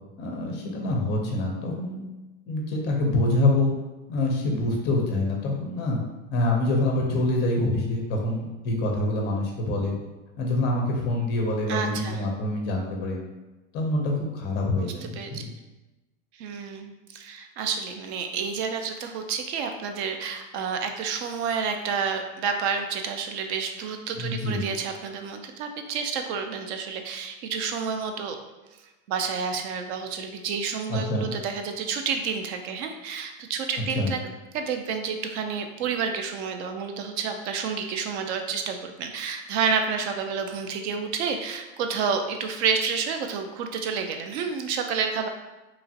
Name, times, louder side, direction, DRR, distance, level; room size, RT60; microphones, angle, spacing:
voice 1, 0.2-2.0 2.5-3.7 4.1-6.0 6.3-10.0 10.4-13.2 13.7-15.5 24.1-24.6 30.9-31.3 33.9-34.1, left 2 dB, 25° left, 0 dB, 0.5 m, -26 dB
voice 2, 11.7-12.2 14.8-15.4 16.4-28.4 29.1-34.2 34.5-45.3, right 6 dB, 55° right, 5 dB, 0.5 m, -29 dB
2.9 x 2.4 x 2.7 m, 1.1 s
supercardioid pair, 140°, 41 cm